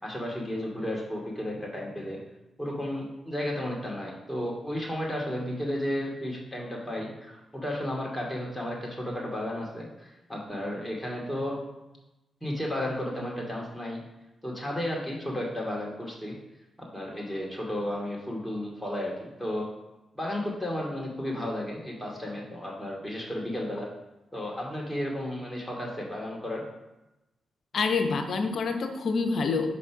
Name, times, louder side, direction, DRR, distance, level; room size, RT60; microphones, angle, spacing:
voice 1, 0.0-2.2 2.6-11.6 12.4-14.0 14.4-16.3 16.8-19.7 20.1-23.9 24.3-26.6, left 1 dB, 5° left, -3 dB, 2.5 m, -33 dB
voice 2, 27.7-29.8, left 4 dB, 65° left, 6 dB, 0.8 m, -27 dB
5.4 x 4.2 x 5.9 m, 0.98 s
supercardioid pair, 50°, 0 cm